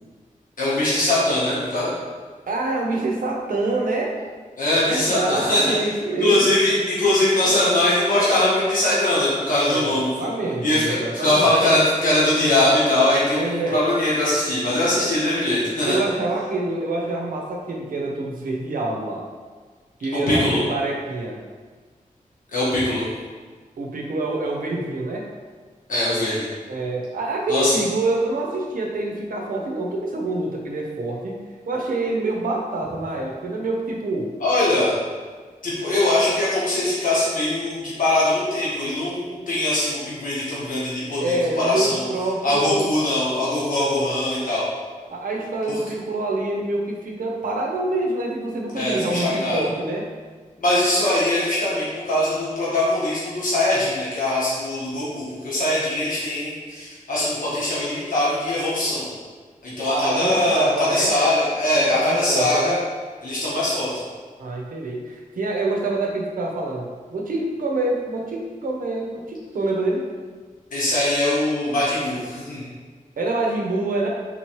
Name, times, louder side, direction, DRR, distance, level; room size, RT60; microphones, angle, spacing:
voice 1, 0.6-1.9 4.6-5.6 6.2-10.3 10.6-16.0 20.3-20.6 22.5-23.1 25.9-26.4 27.5-27.8 34.4-34.9 35.6-42.1 42.4-44.7 45.7-45.8 48.7-49.7 50.6-59.1 59.6-62.7 63.2-64.0 70.7-72.7, left 1 dB, 75° left, -9 dB, 1.1 m, -21 dB
voice 2, 2.5-4.2 4.7-6.5 6.8-7.8 9.5-11.5 13.3-13.8 15.0-15.1 15.5-15.6 15.9-19.3 20.0-21.4 23.8-25.3 26.7-34.3 41.2-42.9 45.1-50.1 59.8-61.1 61.7-62.7 64.4-70.1 73.2-74.1, right 2 dB, 85° right, 0 dB, 0.6 m, -26 dB
4.0 x 3.0 x 2.9 m, 1.5 s
wide cardioid pair, 115°, 14 cm